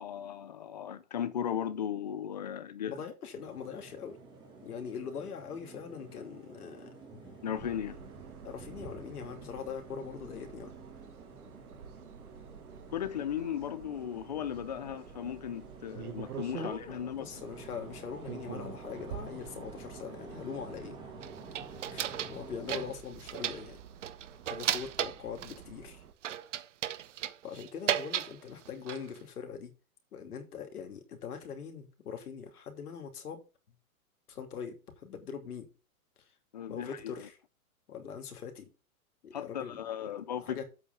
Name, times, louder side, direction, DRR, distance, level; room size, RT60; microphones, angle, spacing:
voice 1, 0.0-2.9 7.4-8.0 12.9-17.3 36.5-37.3 39.3-40.6, left 9 dB, 30° left, 0.6 m, -36 dB
voice 2, 2.9-4.2 4.6-6.9 8.4-10.7 16.5-21.0 21.9-23.8 24.4-26.0 27.4-29.7 30.1-33.4 34.3-35.7 36.7-37.4 37.9-38.7 39.2-40.6, left 6 dB, 85° left, 2.9 m, -42 dB
sound 1, 3.4-22.9, right 3 dB, 10° right, 1.3 m, -50 dB
sound 2, 7.5-26.1, right 8 dB, 80° right, 1.8 m, -49 dB
sound 3, 21.2-22.4 22.7-23.7 24.0-25.6 26.2-28.3 28.7-29.2, right 11 dB, 55° right, 0.8 m, -34 dB
8.0 x 5.6 x 5.8 m
hypercardioid pair, 175°, 44 cm